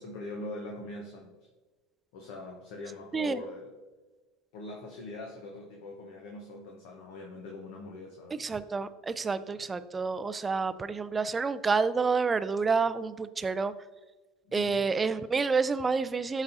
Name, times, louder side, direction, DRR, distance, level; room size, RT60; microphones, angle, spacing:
voice 1, 0.0-1.5 2.1-3.7 4.5-8.5 9.6-9.7 14.4-14.8, left 2 dB, 65° left, 0 dB, 0.9 m, -42 dB
voice 2, 8.3-13.7 14.5-16.4, right 4 dB, 20° right, 13 dB, 0.4 m, -29 dB
12.0 x 4.1 x 2.6 m, 1.3 s
hypercardioid pair, 75°, 0 cm